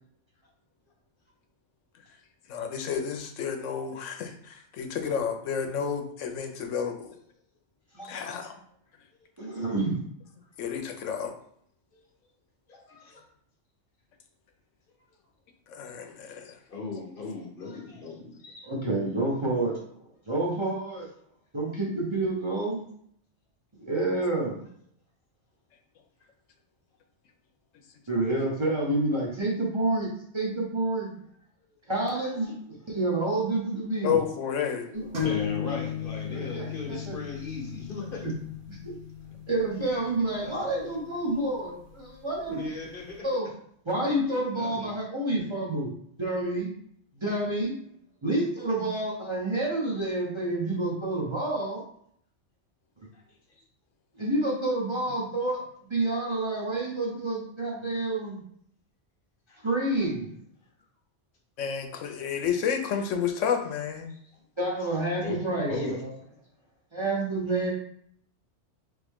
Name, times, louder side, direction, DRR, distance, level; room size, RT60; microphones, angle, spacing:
voice 1, 2.5-7.1 8.1-8.5 10.6-11.3 15.7-16.6 34.0-34.9 61.6-64.1, left 7 dB, 90° left, 5 dB, 1.0 m, -30 dB
voice 2, 9.4-10.0 18.6-19.8 20.3-21.1 21.5-22.8 23.8-24.6 28.1-31.2 31.9-34.2 34.9-35.3 36.3-37.1 38.2-38.3 38.7-38.9 39.5-42.6 43.2-43.5 43.9-45.9 46.2-46.7 47.2-47.8 48.2-51.8 54.2-58.4 59.6-60.3 64.6-66.1 66.9-67.7, right 2 dB, 25° right, -4 dB, 0.9 m, -29 dB
voice 3, 12.7-13.2 16.7-18.7 24.0-24.1 32.1-32.5 35.2-38.2 40.4-40.7 42.5-43.3 44.5-44.9 53.1-53.2 59.5-60.1 64.1-64.2 65.2-65.4 65.7-66.0, left 3 dB, 50° left, 0 dB, 1.0 m, -38 dB
sound 1, 35.1-42.6, left 9 dB, 85° right, 1.5 m, -36 dB
3.7 x 3.5 x 3.5 m, 0.65 s
omnidirectional pair, 1.2 m